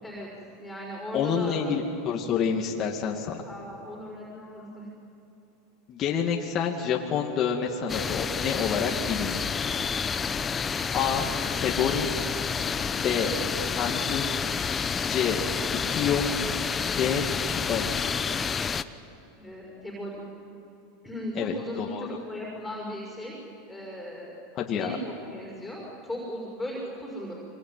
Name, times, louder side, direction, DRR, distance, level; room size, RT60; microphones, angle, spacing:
voice 1, 0.6-1.6 3.5-4.9 11.1-11.3 19.4-20.2 21.0-23.4 23.7-24.3 24.8-25.0 25.3-27.3, left 1 dB, 5° left, -3 dB, 6.1 m, -37 dB
voice 2, 1.1-3.4 5.9-9.6 10.9-11.3 11.6-12.1 12.9-13.3 13.8-14.3 15.0-15.4 15.9-16.2 16.9-17.9 21.4-22.1 24.6-25.0, left 7 dB, 40° left, 0 dB, 2.4 m, -28 dB
sound 1, 7.9-18.8, left 6 dB, 20° left, 0.9 m, -29 dB
24.5 x 24.0 x 9.5 m, 2.9 s
supercardioid pair, 115°, 0 cm